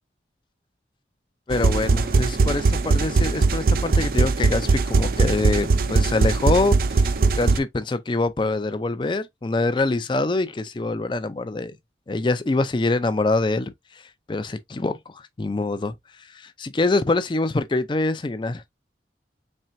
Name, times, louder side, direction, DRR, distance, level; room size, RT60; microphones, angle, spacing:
voice 1, 1.5-7.1 7.4-11.7 12.1-13.7 14.3-15.9 16.3-18.6, left 2 dB, 25° left, 0.4 m, -24 dB
sound 1, 1.5-7.6, right 4 dB, 50° right, 0.4 m, -20 dB
4.4 x 3.3 x 2.5 m
head